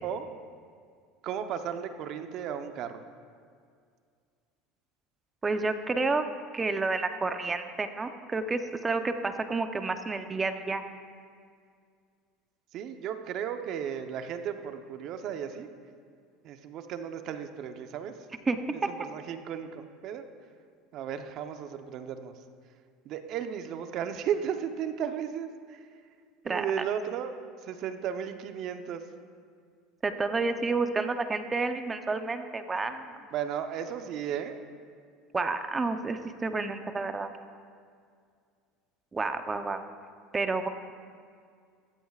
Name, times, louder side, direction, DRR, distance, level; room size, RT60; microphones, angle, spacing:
voice 1, 1.2-3.0 12.7-15.7 16.4-18.2 18.7-20.2 20.9-22.3 23.0-25.9 26.4-27.3 27.6-29.0 33.3-34.6, right 8 dB, 55° right, 7 dB, 0.9 m, -35 dB
voice 2, 5.4-6.2 6.5-10.8 18.5-18.6 26.5-26.7 30.0-33.2 35.3-37.3 39.1-39.8 40.3-40.7, right 3 dB, 20° right, 8 dB, 0.7 m, -30 dB
15.5 x 12.5 x 2.5 m, 2.1 s
supercardioid pair, 105°, 0 cm